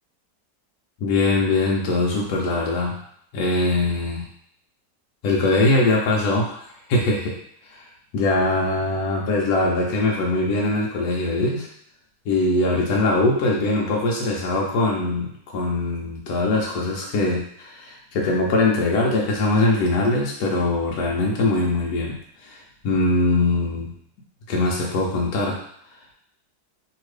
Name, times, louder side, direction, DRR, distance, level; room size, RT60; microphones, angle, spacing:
voice 1, 1.0-3.0 3.3-4.2 5.2-6.6 6.9-7.3 7.7-7.8 8.1-11.7 12.3-22.2 22.4-23.9 24.5-25.6, left 2 dB, 65° left, -2 dB, 1.0 m, -22 dB
2.8 x 2.8 x 3.1 m, 0.68 s
omnidirectional pair, 1.9 m